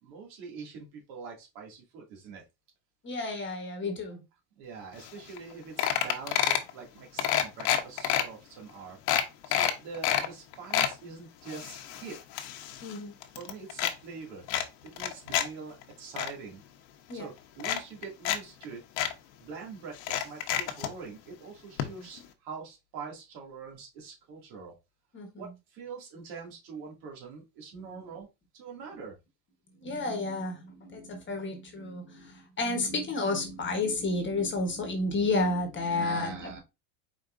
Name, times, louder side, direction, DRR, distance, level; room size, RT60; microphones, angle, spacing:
voice 1, 0.0-2.4 4.5-12.2 13.3-14.5 14.8-16.6 17.1-18.8 19.4-24.7 25.4-28.3 28.5-29.2 35.9-36.6, right 5 dB, 70° right, 0 dB, 2.4 m, -44 dB
voice 2, 3.0-4.2 12.8-13.1 17.1-17.3 21.8-22.0 25.1-25.3 29.8-36.6, left 2 dB, 25° left, 4 dB, 1.2 m, -31 dB
sound 1, 5.1-5.2 5.4-5.5 5.8-6.7 7.2-8.2 8.7-8.8 9.1-10.3 10.5-10.9 11.5-13.0 13.2-13.9 14.5-15.5 15.8-16.3 17.1-17.2 17.6-18.4 18.6-18.7 19.0-19.1 20.0-20.9 21.8-21.9 22.2-22.3, left 11 dB, 80° left, 1.1 m, -28 dB
4.9 x 4.3 x 2.5 m, 0.24 s
supercardioid pair, 135°, 49 cm